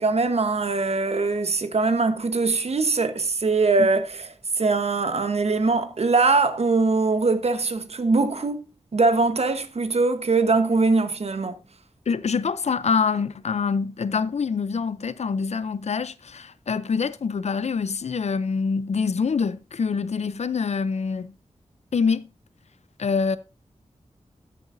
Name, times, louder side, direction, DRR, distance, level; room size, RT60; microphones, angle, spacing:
voice 1, 0.0-4.3 4.6-8.6 8.9-11.6, right 3 dB, 60° right, 1.1 m, -22 dB
voice 2, 12.1-21.3 21.9-22.3 23.0-23.4, left 5 dB, 65° left, 0.5 m, -25 dB
13.0 x 7.0 x 2.6 m
wide cardioid pair, 90°, 12 cm